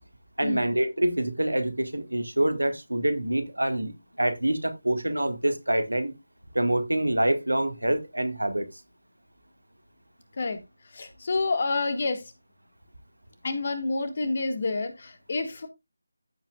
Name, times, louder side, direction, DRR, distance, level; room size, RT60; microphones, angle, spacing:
voice 1, 0.4-3.9 4.2-6.1 6.5-8.7, right 1 dB, 80° right, 1.9 m, -26 dB
voice 2, 10.9-12.3 13.4-15.7, left 3 dB, 40° left, 1.8 m, -28 dB
14.5 x 5.9 x 2.4 m
figure-of-eight pair, 160°, 0 cm